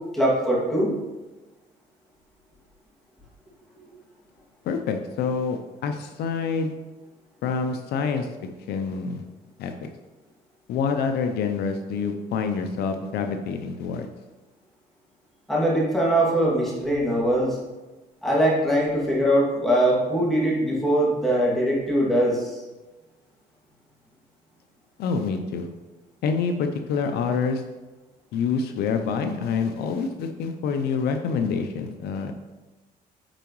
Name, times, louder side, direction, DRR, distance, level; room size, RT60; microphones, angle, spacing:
voice 1, 0.1-0.9 15.5-17.6 18.2-22.6, right 1 dB, ahead, -6 dB, 2.3 m, -22 dB
voice 2, 4.6-6.7 7.4-8.3 8.7-9.2 9.6-9.9 10.7-14.1 25.0-25.7 26.2-27.6 28.3-32.3, left 5 dB, 70° left, 6 dB, 0.6 m, -27 dB
8.9 x 4.8 x 3.1 m, 1.2 s
cardioid pair, 110°, 17 cm